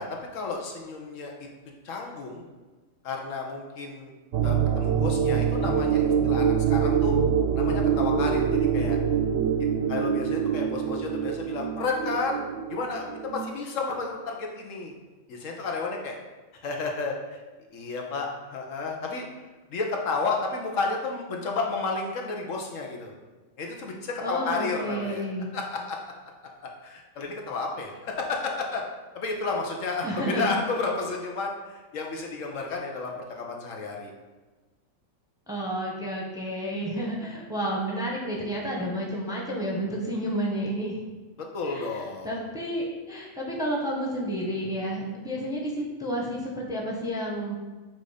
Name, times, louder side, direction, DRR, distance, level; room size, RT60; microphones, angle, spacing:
voice 1, 0.0-1.3 1.8-2.4 3.0-4.1 4.4-7.2 7.5-9.0 9.6-12.4 12.7-14.9 15.3-16.2 16.6-17.1 17.7-19.2 19.7-23.1 23.6-25.2 25.5-26.0 26.8-28.8 29.1-34.1 41.5-42.4, left 3 dB, 80° left, 1 dB, 1.2 m, -31 dB
sound 1, 4.3-13.5, right 7 dB, 65° right, 0.7 m, -25 dB
voice 2, 24.2-25.5 30.0-30.6 35.5-41.0 41.6-47.6, equal, 5° right, -2 dB, 0.8 m, -31 dB
7.5 x 2.6 x 4.9 m, 1.3 s
omnidirectional pair, 1.3 m